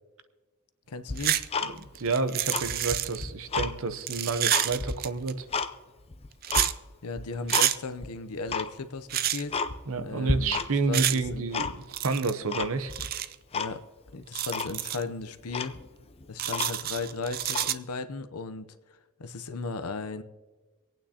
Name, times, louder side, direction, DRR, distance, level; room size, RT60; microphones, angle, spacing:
voice 1, 0.9-1.4 7.0-9.6 10.0-10.6 10.9-11.5 13.5-13.8 14.1-15.8 16.3-18.7 19.2-20.2, left 3 dB, 80° left, 10 dB, 0.7 m, -36 dB
Tick-tock, 1.1-2.1 2.4-3.7 4.2-5.7 6.1-6.7 7.2-7.7 8.0-8.1 8.5-8.7 9.1-9.2 9.5-10.0 10.3-10.9 11.2-12.0 12.5-13.1 13.5-13.7 14.1-14.2 14.5-14.7 15.2-15.3 15.5-17.0 17.5-17.7, left 4 dB, 25° left, 0.5 m, -32 dB
sound 1, 1.2-1.5 1.8-3.2 4.0-5.3 6.4-6.7 7.5-7.8 9.1-9.4 10.9-11.2 11.9-12.3 12.9-13.3 14.3-15.0 16.4-17.7, right 12 dB, 40° right, 0.4 m, -28 dB
voice 2, 1.6-5.5 9.9-11.7 12.0-12.9, right 4 dB, 65° right, 10 dB, 0.8 m, -29 dB
26.0 x 9.1 x 2.9 m, 1.3 s
head